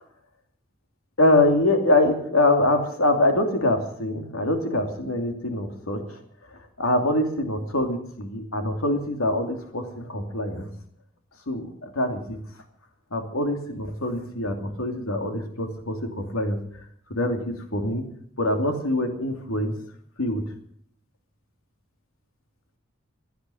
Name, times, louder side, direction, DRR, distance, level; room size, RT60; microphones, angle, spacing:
voice 1, 1.2-6.2 6.5-10.7 11.5-12.4 13.1-16.6 17.1-18.0 18.4-19.7 20.2-20.4, left 1 dB, 85° left, 4 dB, 2.8 m, -24 dB
17.0 x 10.5 x 7.9 m, 0.64 s
head